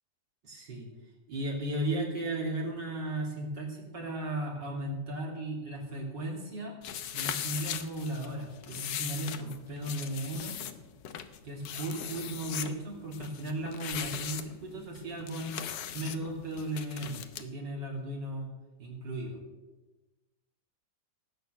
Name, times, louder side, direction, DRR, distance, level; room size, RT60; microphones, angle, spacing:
voice 1, 0.4-0.9 1.3-6.7 7.1-10.6 11.4-15.5 15.9-18.5 18.8-19.4, right 1 dB, 80° right, -1 dB, 3.8 m, -36 dB
sound 1, 6.8-17.4, left 9 dB, 80° left, 1.5 m, -39 dB
17.5 x 6.5 x 8.0 m, 1.1 s
omnidirectional pair, 1.9 m